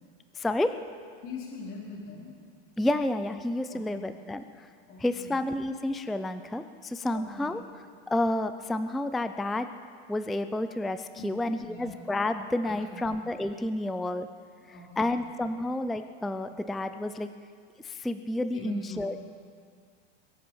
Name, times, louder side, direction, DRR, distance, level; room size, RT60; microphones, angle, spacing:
voice 1, 0.4-0.8 2.8-4.7 5.0-7.6 8.1-9.7 10.1-14.3 15.0-17.3 17.8-19.2, left 1 dB, ahead, 10 dB, 0.3 m, -30 dB
voice 2, 1.2-2.4 3.7-4.1 4.9-5.4 7.1-7.6 11.1-12.0 12.6-13.1 14.7-15.1 18.5-19.1, left 3 dB, 45° left, -4 dB, 3.9 m, -43 dB
23.0 x 7.9 x 7.1 m, 2.2 s
supercardioid pair, 130°, 31 cm